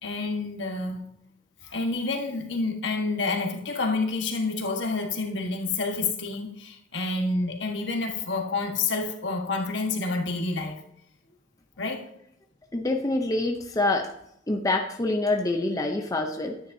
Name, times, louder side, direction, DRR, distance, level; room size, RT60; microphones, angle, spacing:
voice 1, 0.0-1.0 1.6-10.8 11.8-12.0, left 3 dB, 65° left, 2 dB, 1.4 m, -28 dB
voice 2, 12.7-14.1 14.5-16.6, left 2 dB, 20° left, 3 dB, 0.6 m, -26 dB
9.8 x 9.1 x 2.7 m, 0.76 s
head